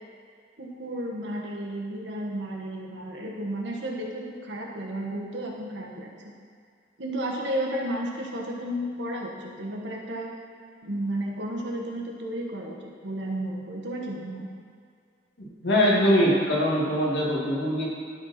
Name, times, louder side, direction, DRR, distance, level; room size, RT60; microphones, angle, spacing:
voice 1, 0.6-6.1 7.0-10.3 10.8-14.5, right 1 dB, 75° right, -1 dB, 1.3 m, -33 dB
voice 2, 15.4-17.9, equal, 65° left, -5 dB, 2.1 m, -22 dB
12.5 x 4.4 x 4.4 m, 2.3 s
head